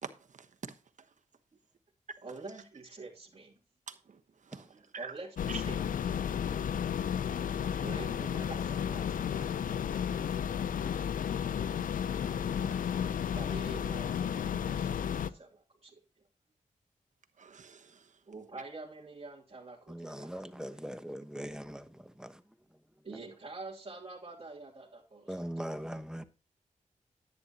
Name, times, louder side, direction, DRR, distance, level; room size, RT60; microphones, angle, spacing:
voice 1, 0.0-0.5 3.9-5.1 5.5-5.6 6.4-6.9 12.5-12.7 17.4-18.1, right 6 dB, 65° right, 1.1 m, -47 dB
voice 2, 2.2-3.5 5.0-5.8 7.8-10.4 13.3-16.0 18.3-20.9 23.0-25.9, right 3 dB, 45° right, 2.7 m, -47 dB
sound 1, 5.4-15.3, left 8 dB, 90° left, 0.5 m, -33 dB
voice 3, 19.9-21.8 22.2-22.3 25.3-26.2, equal, 5° right, 1.1 m, -40 dB
10.5 x 9.5 x 2.9 m
cardioid pair, 55°, 14 cm